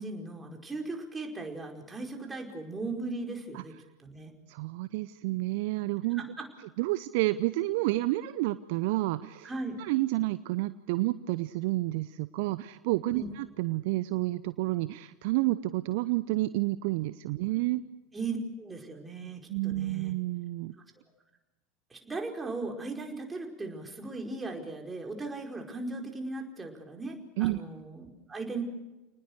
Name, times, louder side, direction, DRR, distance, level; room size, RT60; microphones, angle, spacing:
voice 1, 0.0-4.3 6.2-6.5 9.4-9.8 13.1-13.3 18.1-20.1 21.9-28.6, right 3 dB, 15° right, 2 dB, 4.9 m, -38 dB
voice 2, 4.5-6.2 6.8-9.5 9.8-17.8 19.5-20.7 27.4-27.6, right 18 dB, 60° right, 15 dB, 0.7 m, -30 dB
29.5 x 19.5 x 6.6 m, 1.1 s
figure-of-eight pair, 75°, 0 cm